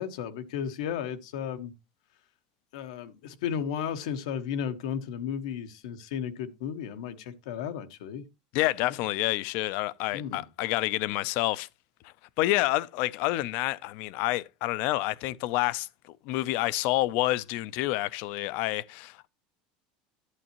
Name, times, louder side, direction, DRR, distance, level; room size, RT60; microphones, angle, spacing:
voice 1, 0.0-1.7 2.7-8.2 10.1-10.4, left 8 dB, 90° left, 1.2 m, -34 dB
voice 2, 8.5-11.7 12.0-15.9 16.2-19.3, left 17 dB, 60° left, 0.5 m, -28 dB
11.0 x 8.2 x 3.0 m
supercardioid pair, 145°, 3 cm